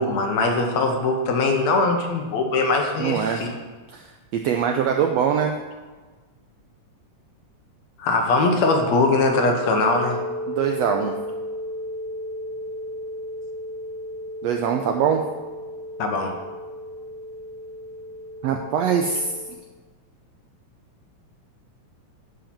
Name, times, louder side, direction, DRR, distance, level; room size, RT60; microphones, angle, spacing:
voice 1, 0.0-3.5 8.0-10.2 16.0-16.3, left 3 dB, 65° left, 3 dB, 2.1 m, -21 dB
voice 2, 3.0-3.4 3.9-5.5 10.5-11.1 14.4-15.2 18.4-19.3, right 7 dB, 85° right, 3 dB, 1.5 m, -23 dB
sound 1, 9.6-19.5, equal, 65° right, 2.6 m, -34 dB
10.0 x 5.0 x 7.4 m, 1.3 s
omnidirectional pair, 3.7 m